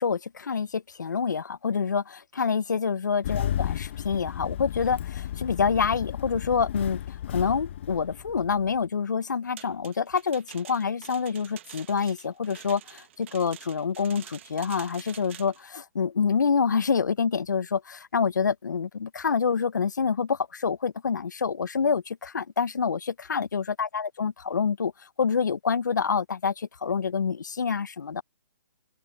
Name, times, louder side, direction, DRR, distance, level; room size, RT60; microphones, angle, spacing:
voice 1, 0.0-24.9 25.2-28.2, left 6 dB, 85° left, 0.7 m, -27 dB
Engine starting, 3.2-8.8, left 11 dB, 40° left, 0.9 m, -33 dB
sound 1, 9.6-15.6, right 12 dB, 40° right, 1.6 m, -48 dB
open air
hypercardioid pair, 155°, 10 cm